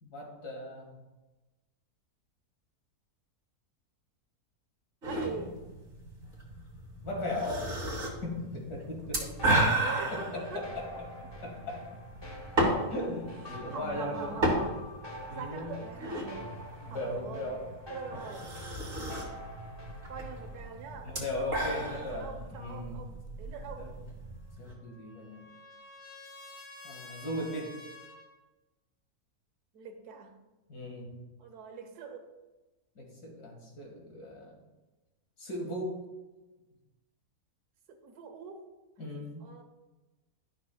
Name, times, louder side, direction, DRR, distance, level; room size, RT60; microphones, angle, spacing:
voice 1, 0.0-0.9 5.3-5.5 7.0-7.7 8.2-9.4 10.1-10.9 11.4-12.0 12.6-14.4 15.2-15.8 16.8-17.6 21.0-23.1 23.8-23.9 24.6-25.5 26.8-27.8 30.7-31.1 33.0-34.5 35.4-36.0 39.0-39.4, left 1 dB, 85° left, 1 dB, 2.2 m, -38 dB
sound 1, 5.0-24.7, right 1 dB, 50° right, 2.2 m, -35 dB
voice 2, 5.0-5.6 9.4-11.0 12.6-12.8 13.5-14.8 15.3-16.6 16.9-17.6 17.9-18.5 20.1-21.2 21.9-24.0 29.7-30.4 31.4-32.3 37.9-38.7 39.4-39.6, right 5 dB, 85° right, 5 dB, 1.5 m, -43 dB
sound 2, 9.4-20.7, left 1 dB, 25° left, 0.6 m, -47 dB
Trumpet, 24.4-28.3, left 2 dB, 50° left, 2.5 m, -50 dB
11.5 x 6.3 x 2.2 m, 1.1 s
omnidirectional pair, 1.6 m